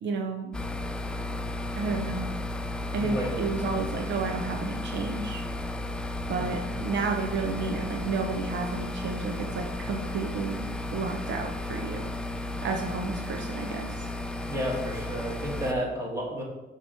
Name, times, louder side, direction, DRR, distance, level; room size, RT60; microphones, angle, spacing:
voice 1, 0.0-0.5 1.8-2.3 2.9-5.4 6.3-10.6 10.9-12.0 12.6-14.1, right 4 dB, 70° right, 2 dB, 0.7 m, -31 dB
sound 1, 0.5-15.7, left 2 dB, 5° left, 0.4 m, -34 dB
voice 2, 3.0-3.4 6.4-6.5 14.5-16.4, equal, 15° right, -3 dB, 2.2 m, -31 dB
6.7 x 3.0 x 5.6 m, 1.0 s
cardioid pair, 90°, 20 cm